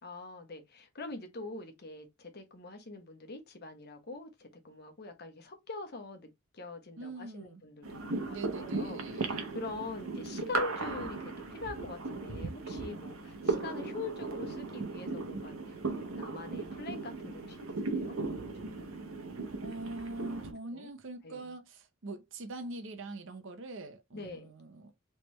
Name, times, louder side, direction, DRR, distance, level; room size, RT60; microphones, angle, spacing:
voice 1, 0.0-15.8 16.2-19.1 20.2-20.3 20.7-20.9 21.2-21.5 24.1-24.5, left 3 dB, 50° left, 1.0 m, -44 dB
voice 2, 7.0-7.6 8.3-9.3 19.6-24.9, right 2 dB, 65° right, 0.8 m, -43 dB
sound 1, 7.8-20.5, right 3 dB, 85° right, 0.9 m, -37 dB
3.3 x 3.2 x 3.1 m
head